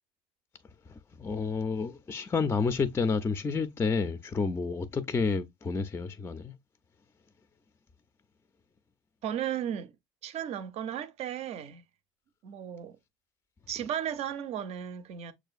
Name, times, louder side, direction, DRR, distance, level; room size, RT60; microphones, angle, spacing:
voice 1, 0.9-6.6, left 4 dB, 20° left, 0.4 m, -30 dB
voice 2, 9.2-9.9 10.2-11.8 12.4-13.0 13.7-15.3, right 10 dB, 60° right, 0.5 m, -35 dB
6.1 x 2.4 x 2.3 m
supercardioid pair, 95°, 12 cm